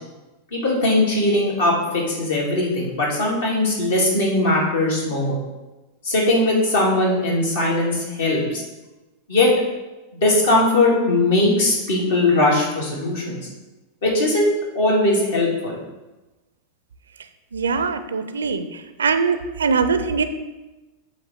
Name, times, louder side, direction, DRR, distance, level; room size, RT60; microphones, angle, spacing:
voice 1, 0.5-5.3 6.0-8.6 9.3-9.5 10.1-13.4 14.0-15.8, left 2 dB, 60° left, -3 dB, 2.4 m, -20 dB
voice 2, 17.5-18.6 19.0-20.2, right 5 dB, 70° right, 10 dB, 0.5 m, -21 dB
8.4 x 3.2 x 6.5 m, 1.1 s
figure-of-eight pair, 90°, 0 cm